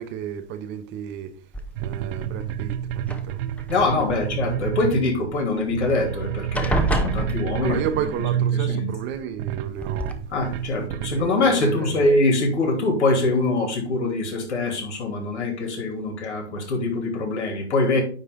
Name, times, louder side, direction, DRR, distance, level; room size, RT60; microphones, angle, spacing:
voice 1, 0.0-1.3 1.8-3.4 7.6-10.2 11.0-12.1, right 9 dB, 35° right, 0.8 m, -32 dB
sound 1, 1.5-2.1 3.0-3.8 5.6-5.7 6.0-6.2 6.5-8.0 9.1-9.2 9.8-10.1, right 1 dB, 5° left, 0.5 m, -27 dB
sound 2, 1.8-11.2, right 10 dB, 55° right, 0.5 m, -29 dB
voice 2, 3.7-7.8 8.5-8.9 10.3-18.0, left 2 dB, 80° left, 3.0 m, -23 dB
9.5 x 3.3 x 3.7 m
hypercardioid pair, 120°, 34 cm